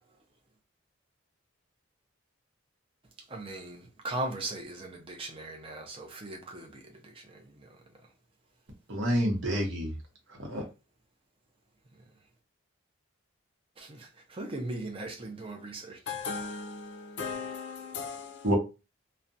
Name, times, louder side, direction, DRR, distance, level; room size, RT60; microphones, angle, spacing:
voice 1, 3.3-3.8 4.0-6.8 13.8-13.9 14.4-16.0, right 2 dB, 25° right, 0.5 m, -38 dB
voice 2, 8.9-9.9 10.4-10.6 18.4-18.6, equal, 65° right, 0.8 m, -28 dB
voice 3, 16.1-18.5, left 5 dB, 55° left, 0.4 m, -37 dB
2.4 x 2.1 x 2.6 m
head